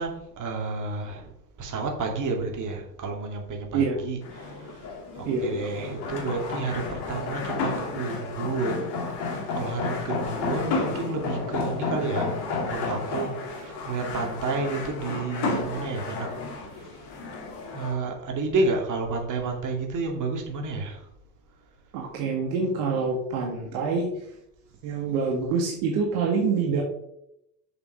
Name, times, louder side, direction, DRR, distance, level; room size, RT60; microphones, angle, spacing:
voice 1, 0.0-1.3 1.6-8.8 9.2-16.3 16.7-17.0 17.7-21.1, right 3 dB, 40° right, 1 dB, 2.6 m, -31 dB
sound 1, 4.2-18.0, left 3 dB, 55° left, 2.5 m, -32 dB
voice 2, 21.9-24.1 24.8-26.8, right 5 dB, 60° right, 0 dB, 1.8 m, -26 dB
7.0 x 6.8 x 5.5 m, 0.80 s
figure-of-eight pair, 65°, 49 cm